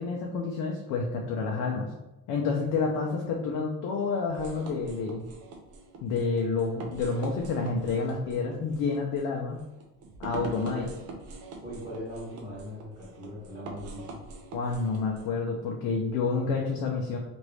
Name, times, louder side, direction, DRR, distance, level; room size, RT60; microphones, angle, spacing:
voice 1, 0.0-1.9 2.3-5.2 6.0-9.6 10.2-10.9 14.5-17.2, left 4 dB, 65° left, 0 dB, 0.5 m, -29 dB
sound 1, 4.3-15.3, right 3 dB, 50° right, 0.5 m, -43 dB
voice 2, 10.6-11.0 11.6-14.2, equal, 25° right, -11 dB, 1.1 m, -40 dB
3.0 x 2.6 x 3.1 m, 0.98 s
cardioid pair, 175°, 32 cm